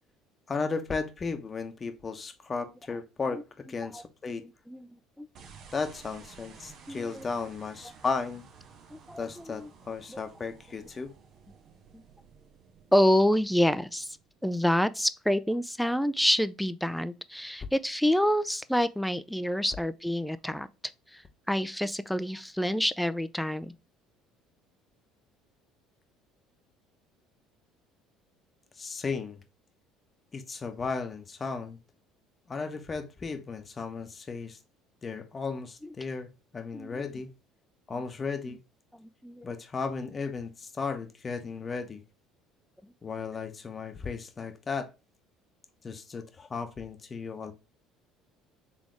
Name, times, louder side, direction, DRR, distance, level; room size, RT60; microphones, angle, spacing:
voice 1, 0.5-4.4 5.7-8.4 9.2-11.1 28.8-29.4 30.3-31.8 32.5-34.6 35.0-37.3 37.9-38.6 39.4-42.0 43.0-44.9 45.8-47.5, left 4 dB, 30° left, 0.9 m, -35 dB
voice 2, 4.3-4.9 5.2-5.3 6.9-7.2 8.9-9.2 9.6-9.7 10.1-10.2 12.9-14.1 14.4-20.7 21.1-21.2 21.5-23.7 36.7-37.0 39.0-39.4, equal, 5° left, 0.4 m, -27 dB
sound 1, 5.3-14.7, right 6 dB, 55° right, 0.8 m, -54 dB
4.1 x 3.5 x 3.1 m
hypercardioid pair, 65°, 0 cm